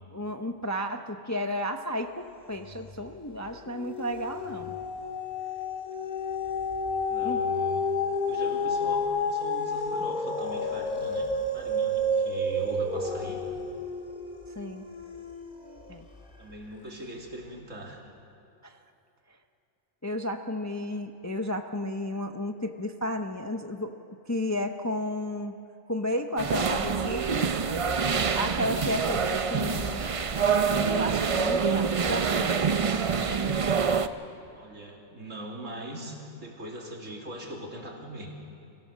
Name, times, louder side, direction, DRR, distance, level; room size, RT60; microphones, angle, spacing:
voice 1, 0.1-4.8 7.2-7.4 14.6-14.8 15.9-16.0 18.6-18.8 20.0-25.5 25.9-27.5 28.3-30.1 30.7-32.6 33.1-33.8, left 1 dB, 20° left, 5 dB, 0.5 m, -33 dB
sound 1, 2.6-3.2 3.5-16.0 16.6-16.7, left 2 dB, 40° left, 1.8 m, -30 dB
voice 2, 7.1-7.9 8.1-13.4 16.4-18.0 34.5-38.3, right 1 dB, 80° right, -1 dB, 3.1 m, -41 dB
sound 2, 26.4-34.1, right 6 dB, 40° right, 0.5 m, -26 dB
24.5 x 16.5 x 6.4 m, 2.8 s
omnidirectional pair, 1.3 m